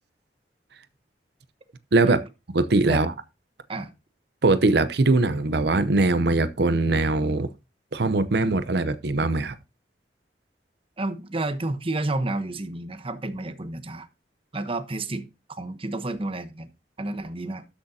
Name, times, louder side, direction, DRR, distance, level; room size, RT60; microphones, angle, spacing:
voice 1, 2.5-3.1 4.4-7.5 7.9-9.5, right 2 dB, 65° right, 0.7 m, -21 dB
voice 2, 11.0-14.1 14.5-15.3 15.6-16.7 17.0-17.6, right 2 dB, 30° right, 1.0 m, -30 dB
13.0 x 6.5 x 2.8 m
head